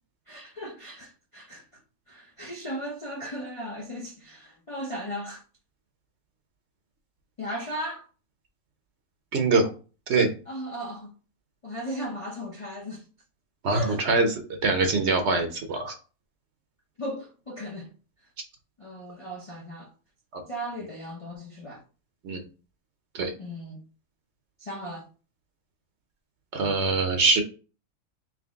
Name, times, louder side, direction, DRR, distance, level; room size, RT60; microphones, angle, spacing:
voice 1, 0.3-1.6 2.1-5.4 7.4-8.1 10.5-11.1 11.6-13.1 13.7-14.0 15.9-16.0 17.0-17.9 18.8-19.9 20.5-21.8 23.4-23.8 24.6-25.1, equal, 35° left, 0.5 m, -36 dB
voice 2, 9.3-9.7 10.1-10.3 13.6-14.3 14.6-15.9 20.3-20.4 22.2-22.4 23.1-23.3 26.5-27.4, right 3 dB, 60° right, 0.9 m, -23 dB
3.8 x 3.1 x 3.5 m
omnidirectional pair, 1.5 m